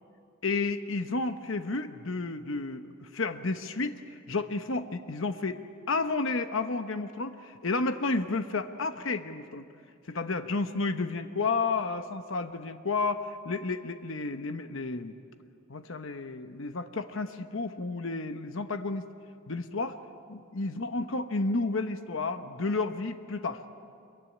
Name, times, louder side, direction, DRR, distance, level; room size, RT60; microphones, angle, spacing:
voice 1, 0.4-5.6 5.9-9.7 10.1-15.1 15.7-19.1 19.5-20.0 20.3-23.6, left 3 dB, 65° left, 8 dB, 1.0 m, -31 dB
26.0 x 23.0 x 9.8 m, 2.4 s
head